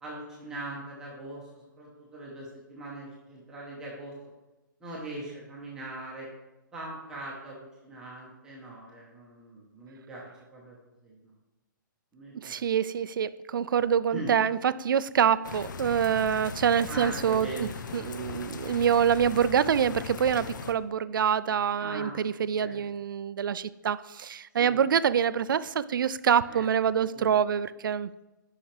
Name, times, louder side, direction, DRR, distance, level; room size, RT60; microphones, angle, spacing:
voice 1, 0.0-4.1 4.8-6.3 6.7-10.8 11.0-11.3 12.1-12.6 14.1-14.3 16.9-17.7 21.8-22.8 24.6-24.8 26.5-26.7 27.0-27.3, right 2 dB, 5° right, -5 dB, 1.0 m, -41 dB
voice 2, 12.4-28.1, right 8 dB, 75° right, 16 dB, 0.4 m, -26 dB
sound 1, 15.4-20.7, left 6 dB, 65° left, 0.6 m, -39 dB
8.7 x 5.7 x 3.3 m, 1.0 s
hypercardioid pair, 170°, 11 cm